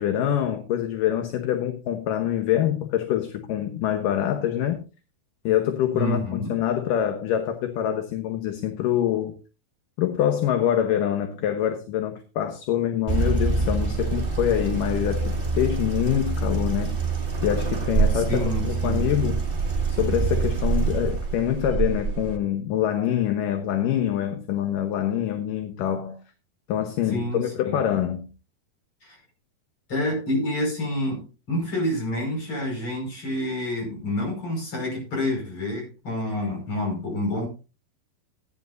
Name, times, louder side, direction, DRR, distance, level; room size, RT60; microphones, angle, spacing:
voice 1, 0.0-4.8 5.4-9.3 10.0-17.0 17.4-19.4 19.9-26.2 26.7-28.3, left 10 dB, 70° left, 2.5 m, -25 dB
voice 2, 5.9-6.6 18.1-19.1 27.0-27.8 29.0-29.2 29.9-37.5, left 1 dB, 35° left, 6.1 m, -28 dB
sound 1, 13.1-22.4, right 4 dB, 20° right, 1.6 m, -25 dB
16.5 x 10.5 x 2.6 m
omnidirectional pair, 4.4 m